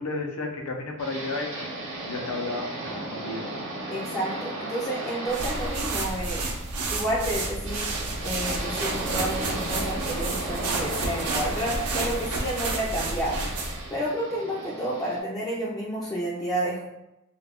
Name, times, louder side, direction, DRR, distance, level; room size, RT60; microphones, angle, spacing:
voice 1, 0.0-1.7 2.0-3.5, left 2 dB, 75° left, 2 dB, 0.5 m, -32 dB
sound 1, 1.0-15.2, right 1 dB, 60° right, 0.8 m, -35 dB
voice 2, 3.9-6.5 6.9-13.4 13.9-16.9, right 1 dB, 15° left, -7 dB, 0.4 m, -30 dB
sound 2, 5.3-13.9, right 3 dB, 85° right, 0.6 m, -30 dB
2.4 x 2.1 x 3.5 m, 0.87 s
head